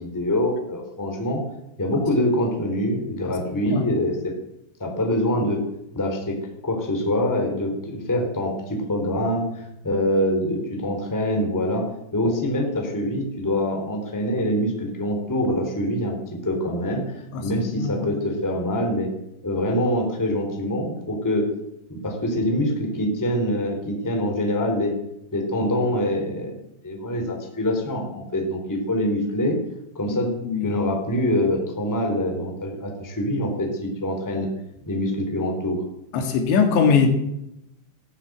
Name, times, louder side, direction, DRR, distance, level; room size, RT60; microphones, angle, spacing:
voice 1, 0.0-1.4 1.8-4.3 4.8-5.6 5.9-6.4 6.6-11.8 12.1-19.1 19.4-21.5 21.9-24.9 25.3-26.5 26.8-29.6 29.9-30.3 30.6-34.5 34.9-35.8, left 1 dB, 5° left, 2 dB, 2.6 m, -25 dB
voice 2, 17.8-18.1 30.1-30.2 30.4-30.8 36.1-37.1, left 5 dB, 70° left, 5 dB, 3.8 m, -21 dB
18.5 x 9.8 x 8.0 m, 0.84 s
omnidirectional pair, 5.5 m